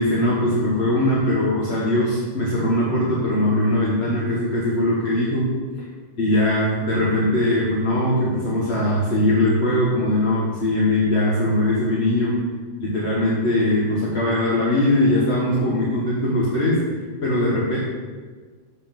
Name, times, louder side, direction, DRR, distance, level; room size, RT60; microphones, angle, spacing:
voice 1, 0.0-5.5 6.2-12.4 12.8-16.9 17.2-17.8, left 1 dB, 85° left, -6 dB, 1.7 m, -21 dB
7.4 x 5.5 x 7.4 m, 1.5 s
omnidirectional pair, 1.1 m